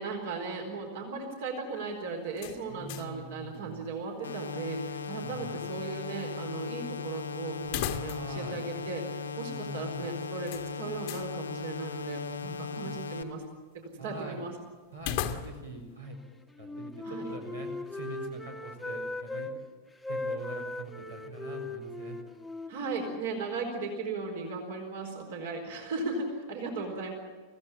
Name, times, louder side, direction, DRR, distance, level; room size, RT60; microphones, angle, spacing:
voice 1, 0.0-13.4 13.7-14.5 17.0-17.2 22.7-27.1, right 3 dB, 55° right, 3 dB, 4.3 m, -37 dB
sound 1, 2.3-3.2 3.5-3.6 7.6-8.5 8.8-8.9 10.5-11.3 15.0-15.8, left 10 dB, 50° left, 1.4 m, -36 dB
voice 2, 2.7-3.9 5.2-5.6 8.1-8.7 9.5-10.1 12.4-12.9 14.0-14.4 14.9-16.2 16.6-19.5 20.1-22.2, right 2 dB, 80° right, 0 dB, 4.4 m, -44 dB
sound 2, 4.2-13.2, left 5 dB, 75° left, 1.3 m, -38 dB
Wind instrument woodwind instrument, 16.6-19.5 20.0-23.9, left 2 dB, 5° left, 1.5 m, -39 dB
24.5 x 16.5 x 8.9 m, 1.4 s
figure-of-eight pair, 90°, 0 cm